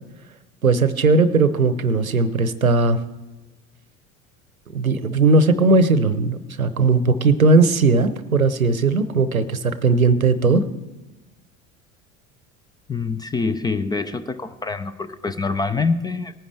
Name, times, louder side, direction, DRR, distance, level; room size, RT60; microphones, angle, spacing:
voice 1, 0.6-3.0 4.7-10.6, right 3 dB, 90° right, 13 dB, 0.7 m, -18 dB
voice 2, 12.9-16.3, left 4 dB, 10° left, 11 dB, 0.3 m, -25 dB
18.5 x 10.0 x 3.4 m, 1.1 s
figure-of-eight pair, 70°, 41 cm